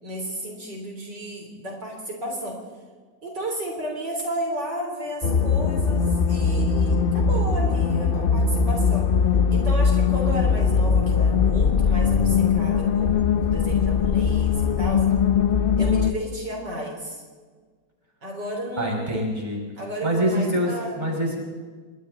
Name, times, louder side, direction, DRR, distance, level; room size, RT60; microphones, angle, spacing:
voice 1, 0.0-2.6 3.2-9.1 9.5-15.0 15.8-17.2 18.2-19.3 19.8-21.0, right 1 dB, 65° right, 0 dB, 4.4 m, -33 dB
sound 1, 5.2-16.1, left 6 dB, 50° left, 0.6 m, -21 dB
voice 2, 18.8-19.6 20.0-21.4, equal, 20° right, -1 dB, 5.5 m, -25 dB
28.5 x 23.5 x 4.0 m, 1.5 s
omnidirectional pair, 2.0 m